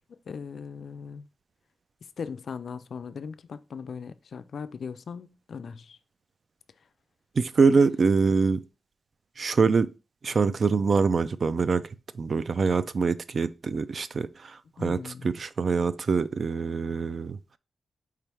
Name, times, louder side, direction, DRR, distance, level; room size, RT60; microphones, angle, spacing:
voice 1, 0.3-1.3 2.2-6.0 14.8-15.3, left 6 dB, 65° left, 0.3 m, -38 dB
voice 2, 7.4-8.6 9.4-9.9 10.2-11.8 12.2-17.4, right 4 dB, 50° right, 0.3 m, -24 dB
4.7 x 3.0 x 3.4 m
cardioid pair, 85°, 0 cm